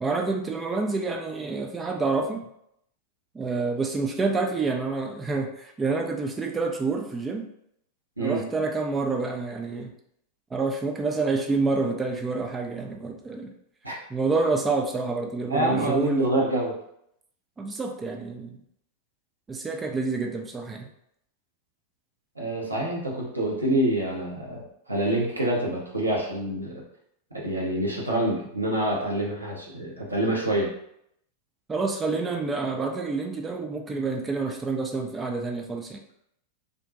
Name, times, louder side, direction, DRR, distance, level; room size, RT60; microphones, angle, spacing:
voice 1, 0.0-2.5 3.3-7.5 8.2-9.9 10.5-13.5 14.1-16.3 17.6-18.6 19.5-20.9 31.7-36.0, right 3 dB, 15° right, 3 dB, 0.3 m, -28 dB
voice 2, 15.5-16.7 22.4-26.8 27.4-30.7, right 1 dB, 80° right, -3 dB, 0.7 m, -26 dB
2.5 x 2.1 x 2.5 m, 0.73 s
figure-of-eight pair, 90°, 0 cm